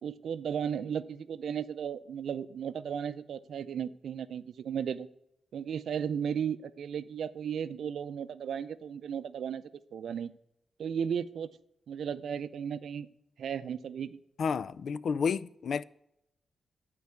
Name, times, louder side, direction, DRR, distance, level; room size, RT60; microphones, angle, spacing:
voice 1, 0.0-5.1 5.5-9.6 9.9-10.3 10.8-11.6 11.9-13.1 13.4-14.2, right 8 dB, 75° right, 0.5 m, -35 dB
voice 2, 14.4-15.8, left 6 dB, 60° left, 0.3 m, -31 dB
12.0 x 4.7 x 8.2 m
wide cardioid pair, 175°, 0 cm